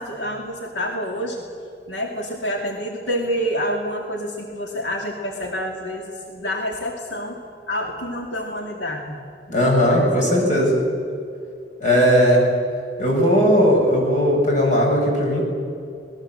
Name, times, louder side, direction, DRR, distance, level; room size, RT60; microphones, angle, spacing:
voice 1, 0.0-1.4 1.9-7.4 7.7-9.2 9.6-10.1 10.4-10.5, equal, 90° left, 2 dB, 2.4 m, -28 dB
voice 2, 9.5-10.8 11.8-12.5 13.0-15.4, equal, 45° left, 0 dB, 7.3 m, -17 dB
26.0 x 19.5 x 7.7 m, 2.4 s
head